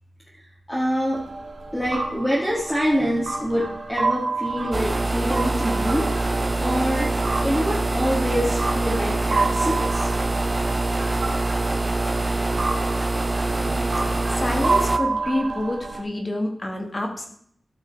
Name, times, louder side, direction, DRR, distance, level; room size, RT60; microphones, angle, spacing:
voice 1, 0.7-1.2 1.7-6.1 6.6-7.1 7.4-10.1, equal, 10° left, -5 dB, 1.9 m, -25 dB
sound 1, 1.1-16.0, right 3 dB, 85° right, 2.1 m, -29 dB
sound 2, 4.7-15.0, right 2 dB, 25° right, 0.6 m, -24 dB
voice 2, 14.4-17.3, left 1 dB, 30° left, 3 dB, 1.8 m, -27 dB
13.5 x 5.6 x 4.6 m, 0.65 s
wide cardioid pair, 125°, 0 cm